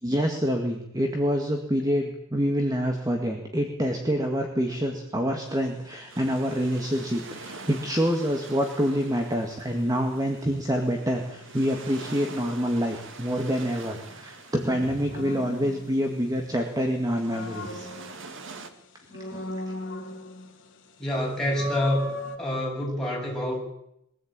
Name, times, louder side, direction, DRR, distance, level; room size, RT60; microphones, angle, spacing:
voice 1, 0.0-17.9 19.3-19.4, equal, 15° right, 3 dB, 2.0 m, -27 dB
sound 1, 5.5-5.8 15.1-16.5 17.0-18.6 19.1-20.7 21.0-21.1 21.5-22.4, left 1 dB, 60° left, 2.7 m, -37 dB
sound 2, 6.1-18.7, right 4 dB, 60° right, 2.1 m, -45 dB
voice 2, 14.6-15.2 21.0-23.6, left 1 dB, 5° left, -3 dB, 7.4 m, -28 dB
22.5 x 15.5 x 8.9 m, 0.80 s
head